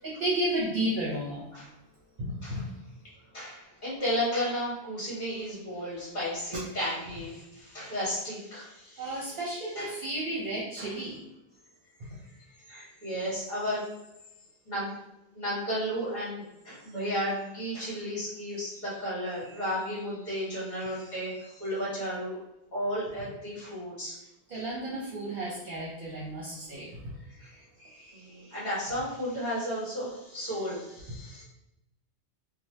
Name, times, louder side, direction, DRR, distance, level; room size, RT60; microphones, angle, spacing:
voice 1, 0.0-1.4 2.2-2.6 9.0-11.1 24.5-26.9, right 1 dB, 50° right, -5 dB, 0.8 m, -32 dB
voice 2, 3.3-9.4 9.7-9.9 10.8-11.0 12.7-13.8 14.6-14.9 15.3-22.4 22.7-24.1 24.5-24.6 27.4-31.4, equal, 40° left, -8 dB, 1.6 m, -34 dB
3.2 x 2.2 x 2.7 m, 0.90 s
omnidirectional pair, 1.2 m